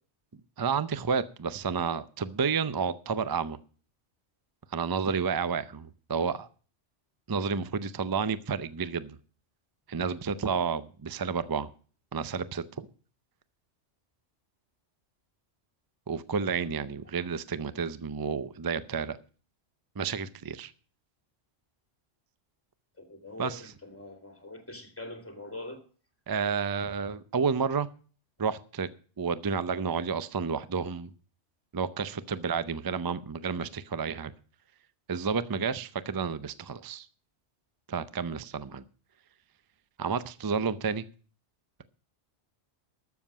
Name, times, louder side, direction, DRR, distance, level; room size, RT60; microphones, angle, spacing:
voice 1, 0.6-3.6 4.7-6.5 7.3-9.2 9.9-11.7 12.1-12.9 16.1-19.2 20.0-20.7 23.4-23.6 26.3-27.9 28.4-28.9 29.2-31.1 31.7-34.3 35.1-37.1 37.9-38.8 40.0-41.0, right 5 dB, 30° right, 0.4 m, -30 dB
voice 2, 23.0-23.6 23.8-25.8, left 2 dB, 10° left, 2.5 m, -42 dB
13.0 x 7.2 x 6.1 m
omnidirectional pair, 1.2 m